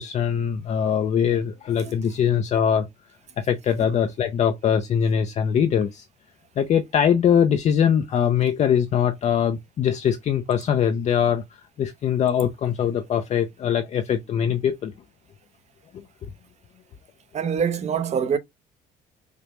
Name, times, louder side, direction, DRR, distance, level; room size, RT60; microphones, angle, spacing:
voice 1, 0.0-2.9 3.4-6.0 6.6-11.4 11.8-14.9 15.9-16.3, left 8 dB, 45° left, 0.5 m, -22 dB
voice 2, 17.3-18.4, right 7 dB, 40° right, 0.7 m, -24 dB
5.0 x 2.1 x 2.9 m
cardioid pair, 110°, 17 cm